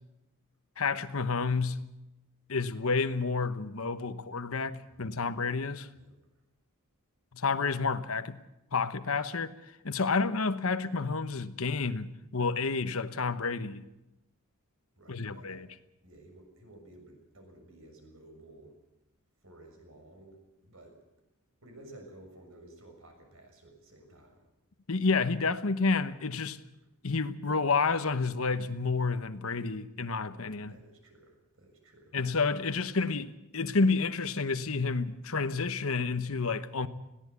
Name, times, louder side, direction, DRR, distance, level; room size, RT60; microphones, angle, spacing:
voice 1, 0.8-1.9 2.5-5.9 7.3-8.4 8.7-9.5 9.8-13.8 15.1-15.7 24.9-26.6 27.0-30.7 32.1-36.9, left 4 dB, 70° left, 1.1 m, -30 dB
voice 2, 4.9-5.3 6.0-6.2 15.0-15.7 16.0-18.7 19.4-21.0 21.6-24.4 30.7-32.2, right 1 dB, 65° right, 6.7 m, -54 dB
21.0 x 16.5 x 8.3 m
head